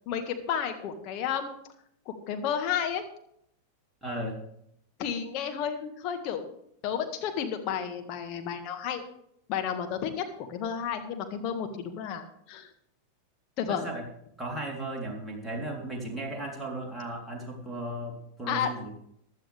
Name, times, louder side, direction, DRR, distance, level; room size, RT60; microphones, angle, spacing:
voice 1, 0.1-1.5 2.1-3.0 5.0-6.5 6.8-9.0 9.5-12.7 13.6-13.8 18.5-18.7, left 8 dB, 40° left, 5 dB, 1.8 m, -32 dB
voice 2, 4.0-4.4 13.7-14.1 14.4-18.9, right 1 dB, 5° right, -3 dB, 3.6 m, -36 dB
15.5 x 11.5 x 3.4 m, 0.72 s
figure-of-eight pair, 90°, 0 cm